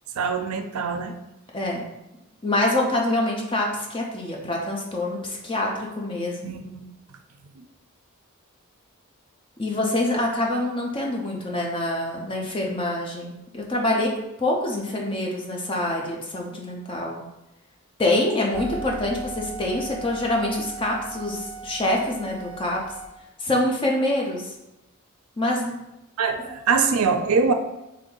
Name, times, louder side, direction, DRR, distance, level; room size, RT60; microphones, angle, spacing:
voice 1, 0.2-1.1 6.4-6.8 26.2-27.5, right 5 dB, 85° right, 7 dB, 0.4 m, -23 dB
voice 2, 1.5-1.9 2.4-6.6 9.6-17.2 18.0-22.8 23.4-24.5 25.4-25.8, left 1 dB, 25° left, -1 dB, 0.6 m, -25 dB
sound 1, 18.5-23.1, right 4 dB, 25° right, 0.6 m, -37 dB
3.3 x 2.6 x 3.8 m, 0.92 s
head